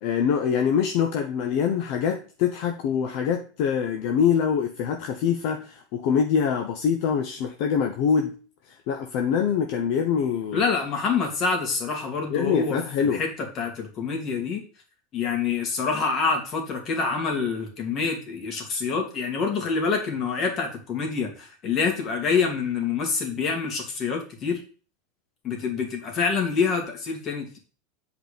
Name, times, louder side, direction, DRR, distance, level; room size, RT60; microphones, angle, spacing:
voice 1, 0.0-8.3 8.7-10.6 12.3-13.2, left 7 dB, 60° left, 5 dB, 1.0 m, -24 dB
voice 2, 10.5-14.6 15.1-24.6 25.4-27.6, left 5 dB, 40° left, 3 dB, 2.8 m, -26 dB
8.1 x 4.8 x 5.2 m, 0.38 s
supercardioid pair, 125°, 0 cm